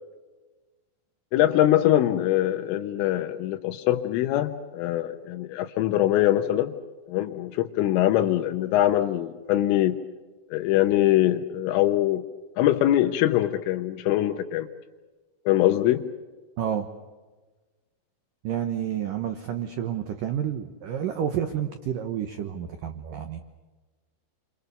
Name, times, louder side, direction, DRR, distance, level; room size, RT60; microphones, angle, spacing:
voice 1, 1.3-6.7 7.1-10.0 10.5-12.2 12.6-14.7 15.5-16.0, left 13 dB, 85° left, 5 dB, 3.6 m, -23 dB
voice 2, 16.6-16.9 18.4-23.4, right 9 dB, 75° right, 7 dB, 2.0 m, -30 dB
30.0 x 25.0 x 6.9 m, 1.2 s
omnidirectional pair, 5.6 m